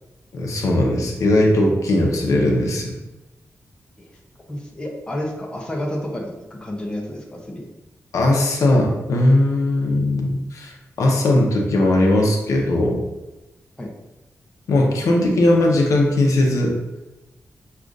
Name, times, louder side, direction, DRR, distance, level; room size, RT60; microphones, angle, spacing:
voice 1, 0.3-2.9 8.1-10.7 11.0-13.0 14.7-16.8, left 1 dB, 85° left, 0 dB, 0.7 m, -18 dB
voice 2, 4.5-7.7 13.8-13.9, left 1 dB, 15° left, -2 dB, 0.7 m, -30 dB
6.4 x 2.4 x 2.5 m, 1.0 s
wide cardioid pair, 155°, 5 cm